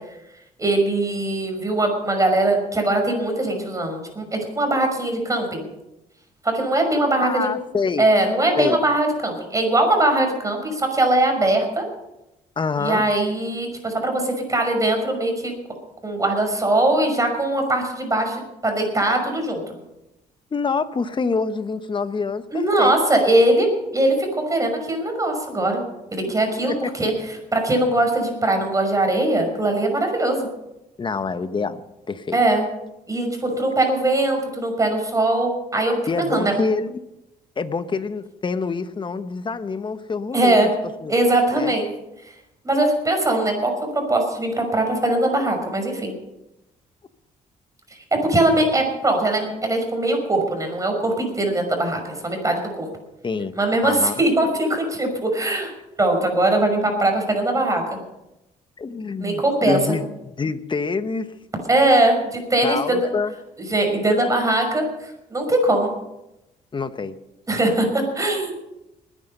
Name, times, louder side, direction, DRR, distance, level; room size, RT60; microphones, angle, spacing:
voice 1, 0.6-5.6 6.4-7.5 8.0-11.8 12.8-15.5 16.0-19.7 22.5-23.7 23.9-25.8 26.1-30.5 32.3-32.6 33.1-36.0 36.3-36.5 40.3-40.7 41.1-41.9 42.6-46.1 48.1-52.9 53.6-55.7 56.0-57.8 59.2-59.8 61.7-63.1 63.7-65.9 67.5-68.5, right 1 dB, 20° right, 4 dB, 5.8 m, -21 dB
voice 2, 7.2-8.1 8.6-8.8 12.6-13.0 20.5-23.0 26.3-26.4 26.7-26.9 31.0-31.8 32.1-32.4 36.1-36.9 37.6-40.7 41.0-41.1 41.5-41.7 53.2-53.5 53.8-54.1 58.8-60.0 60.4-61.3 62.6-63.3 66.7-67.2, left 4 dB, 35° left, 11 dB, 1.2 m, -26 dB
20.5 x 10.0 x 5.5 m, 0.91 s
cardioid pair, 85°, 15 cm